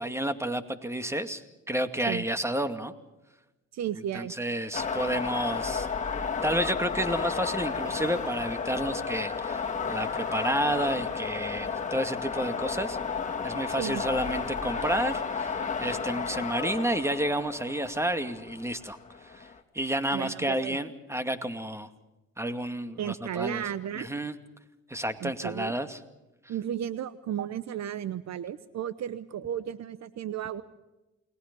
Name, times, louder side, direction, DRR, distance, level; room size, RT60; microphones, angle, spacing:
voice 1, 0.0-1.4 1.7-2.9 4.1-5.9 6.4-13.0 13.4-19.0 19.2-19.5 19.7-21.9 22.4-23.6 24.0-24.4 24.9-26.0, right 1 dB, 10° right, 9 dB, 2.4 m, -30 dB
voice 2, 3.7-4.3 13.8-14.0 20.1-20.8 23.0-24.1 25.2-25.7 26.5-30.6, right 10 dB, 60° right, 16 dB, 1.0 m, -34 dB
sound 1, 4.7-19.6, left 5 dB, 25° left, 3.1 m, -32 dB
29.0 x 20.5 x 5.5 m, 1.0 s
supercardioid pair, 60°, 30 cm